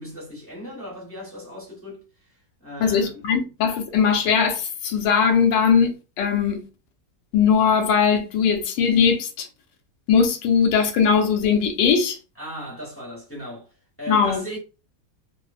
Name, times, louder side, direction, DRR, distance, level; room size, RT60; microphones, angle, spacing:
voice 1, 0.0-2.0 2.3-3.3 12.4-13.7 14.0-14.6, equal, 10° left, 0.6 m, -37 dB
voice 2, 2.8-6.7 7.3-9.5 10.1-12.2 14.1-14.4, left 6 dB, 80° left, 1.2 m, -20 dB
2.9 x 2.0 x 2.3 m
omnidirectional pair, 1.9 m